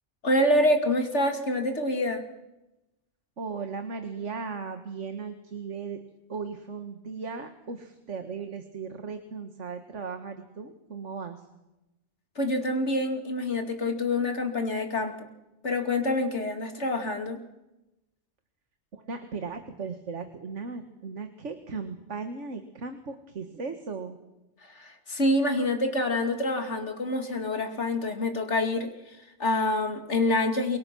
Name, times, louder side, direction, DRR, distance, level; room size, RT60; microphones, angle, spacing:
voice 1, 0.2-2.2 12.4-15.3 15.6-17.4 24.6-30.8, left 1 dB, 70° left, 5 dB, 2.9 m, -26 dB
voice 2, 3.4-6.0 6.3-11.4 18.9-24.2, right 5 dB, 80° right, 7 dB, 1.9 m, -37 dB
28.5 x 24.0 x 6.2 m, 0.97 s
omnidirectional pair, 1.2 m